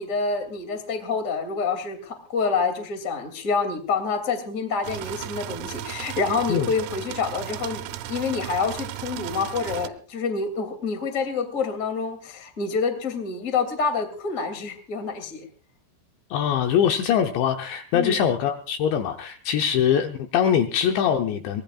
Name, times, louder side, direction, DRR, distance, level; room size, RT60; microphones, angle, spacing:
voice 1, 0.0-7.8 8.1-15.4 17.9-18.2, left 4 dB, 25° left, 7 dB, 1.8 m, -27 dB
sound 1, 4.8-9.9, right 14 dB, 85° right, 3.6 m, -35 dB
voice 2, 16.3-21.6, left 8 dB, 75° left, 5 dB, 2.8 m, -23 dB
24.5 x 20.0 x 2.4 m, 0.39 s
omnidirectional pair, 5.9 m